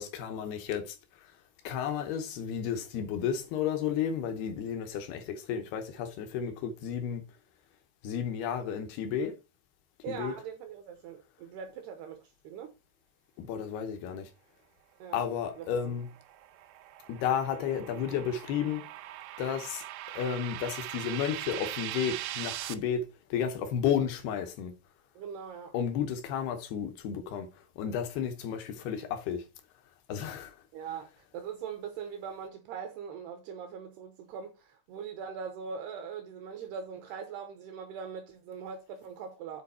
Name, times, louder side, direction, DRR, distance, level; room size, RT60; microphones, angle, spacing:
voice 1, 0.0-1.4 1.6-7.2 8.0-9.4 10.1-10.3 13.4-14.3 15.1-16.1 17.1-18.9 19.4-19.8 20.1-24.7 25.7-29.5 30.1-30.6, left 8 dB, 75° left, 2.5 m, -32 dB
voice 2, 10.0-12.7 15.0-15.2 15.6-15.9 25.2-25.7 30.7-39.6, right 6 dB, 75° right, 2.5 m, -41 dB
sound 1, 15.9-22.7, right 14 dB, 90° right, 3.2 m, -41 dB
9.5 x 4.5 x 4.3 m
omnidirectional pair, 5.6 m